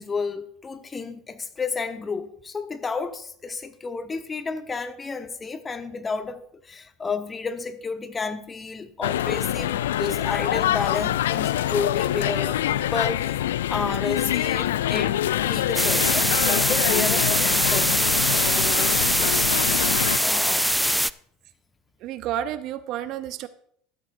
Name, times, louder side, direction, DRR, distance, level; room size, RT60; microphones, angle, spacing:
voice 1, 0.0-13.4 13.7-17.9 18.2-19.5 20.2-20.7, left 4 dB, 25° left, 1.1 m, -31 dB
sound 1, 9.0-20.2, left 12 dB, 75° left, 0.3 m, -25 dB
sound 2, 15.7-21.1, equal, ahead, 0.3 m, -22 dB
voice 2, 22.0-23.5, right 11 dB, 55° right, 0.6 m, -30 dB
13.0 x 12.5 x 2.6 m
hypercardioid pair, 75°, 0 cm